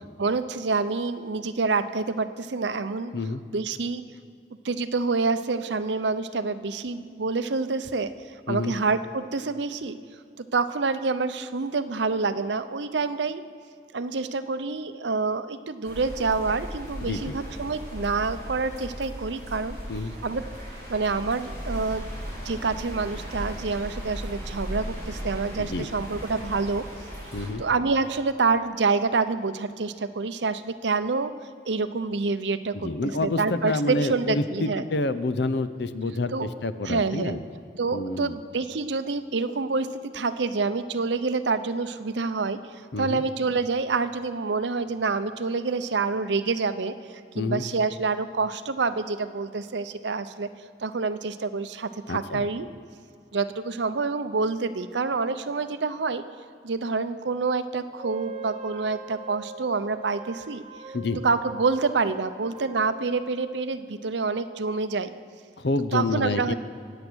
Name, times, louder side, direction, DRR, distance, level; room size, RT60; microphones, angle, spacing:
voice 1, 0.2-3.1 3.5-4.0 4.6-8.1 8.5-10.0 10.4-13.4 13.9-19.8 20.2-20.4 20.9-22.1 22.4-26.9 27.6-31.3 31.7-34.8 36.3-36.5 36.8-37.4 37.8-42.6 43.0-50.5 50.8-52.7 53.3-56.2 56.6-60.6 61.1-65.1 65.9-66.5, right 4 dB, 80° right, 11 dB, 0.7 m, -27 dB
sound 1, 15.8-27.5, equal, 15° left, 4.8 m, -37 dB
voice 2, 17.0-17.4 19.9-20.1 25.6-25.9 27.3-27.6 32.7-37.4 37.9-38.4 42.9-43.2 47.4-47.6 52.1-52.5 60.9-61.2 65.6-66.5, left 2 dB, 70° left, 12 dB, 0.7 m, -28 dB
Wind instrument woodwind instrument, 58.0-63.6, right 5 dB, 35° right, 0.8 m, -42 dB
24.0 x 8.7 x 6.3 m, 2.2 s
head